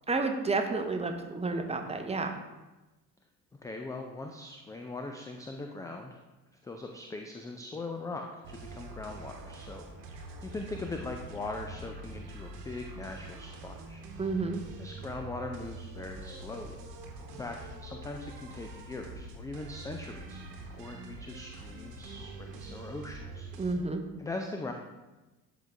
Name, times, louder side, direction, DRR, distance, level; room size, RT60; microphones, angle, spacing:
voice 1, 0.1-2.3 14.2-14.6 23.6-24.0, right 3 dB, 15° right, 5 dB, 0.9 m, -30 dB
voice 2, 3.6-6.2 6.6-14.0 14.3-14.5 14.8-16.8 17.3-23.5 24.2-24.7, left 2 dB, 10° left, 3 dB, 0.3 m, -41 dB
sound 1, 8.4-23.7, right 2 dB, 70° right, 1.1 m, -45 dB
11.5 x 3.9 x 3.4 m, 1.1 s
figure-of-eight pair, 55°, 49 cm